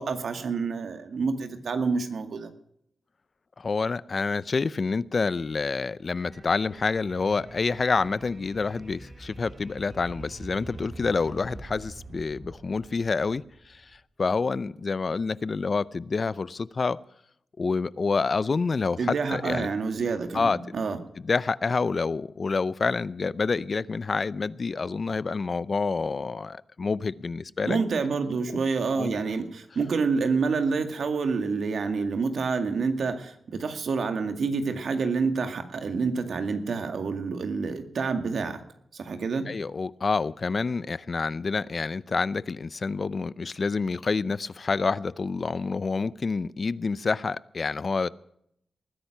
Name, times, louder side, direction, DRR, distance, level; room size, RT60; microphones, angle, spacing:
voice 1, 0.0-2.5 19.0-21.0 27.7-38.6 38.9-39.5, right 4 dB, 75° right, 7 dB, 2.1 m, -28 dB
voice 2, 3.6-13.8 14.2-17.0 17.6-19.7 20.3-20.6 21.2-27.8 29.0-29.1 39.5-48.1, left 4 dB, 50° left, 19 dB, 0.6 m, -28 dB
sound 1, 6.1-14.0, right 2 dB, 50° right, 3.4 m, -45 dB
20.0 x 10.0 x 6.0 m, 0.72 s
cardioid pair, 70°, 0 cm